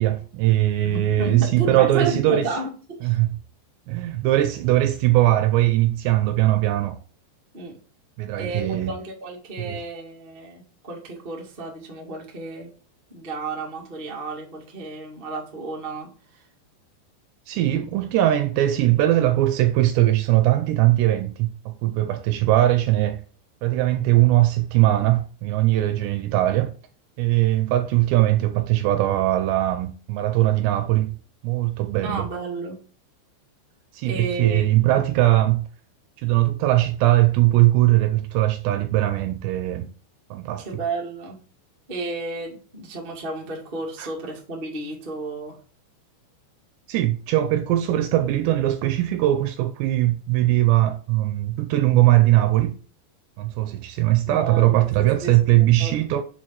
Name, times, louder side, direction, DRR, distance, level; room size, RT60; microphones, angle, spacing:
voice 1, 0.0-2.5 3.0-3.4 3.9-7.0 8.2-8.9 9.7-9.8 17.5-23.2 23.6-26.7 27.2-31.2 31.4-32.3 33.9-35.6 36.2-39.9 40.3-40.8 44.0-44.1 46.9-52.7 53.4-56.2, right 15 dB, 80° right, 2.6 m, -20 dB
voice 2, 0.8-3.2 7.5-7.7 8.4-12.7 13.1-16.4 32.0-32.8 34.0-34.6 34.9-35.0 40.6-41.4 41.9-45.6 54.3-54.7 55.2-55.9, right 3 dB, 45° right, 0.6 m, -32 dB
7.0 x 4.7 x 5.9 m
omnidirectional pair, 5.5 m